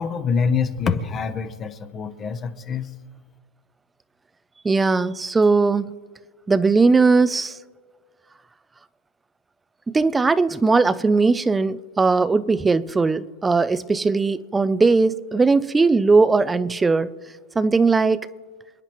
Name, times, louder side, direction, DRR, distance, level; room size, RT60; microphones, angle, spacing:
voice 1, 0.0-2.9, left 5 dB, 20° left, 0.8 m, -25 dB
voice 2, 4.6-5.9 6.5-7.6 9.9-17.1 17.6-18.3, right 4 dB, 10° right, 0.4 m, -19 dB
28.0 x 10.0 x 3.0 m
supercardioid pair, 155°, 0 cm